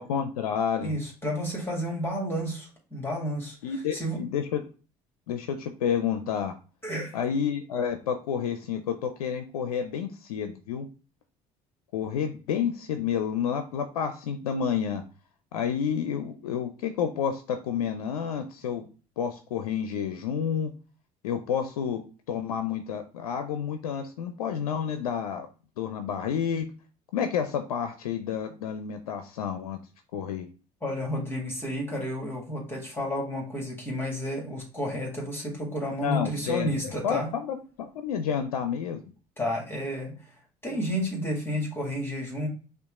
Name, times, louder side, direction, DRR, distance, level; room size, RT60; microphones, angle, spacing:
voice 1, 0.0-1.0 3.6-4.6 5.3-6.5 7.1-10.9 11.9-15.0 15.5-18.8 19.2-20.7 21.2-22.0 22.3-25.5 25.8-26.7 27.1-29.8 30.1-30.5 36.0-36.7 37.0-39.0, left 7 dB, 90° left, 8 dB, 0.4 m, -30 dB
voice 2, 0.8-4.2 6.8-7.2 30.8-37.3 39.4-40.2 40.6-42.5, equal, 10° left, -2 dB, 2.0 m, -31 dB
5.6 x 2.4 x 3.5 m, 0.36 s
hypercardioid pair, 65°, 19 cm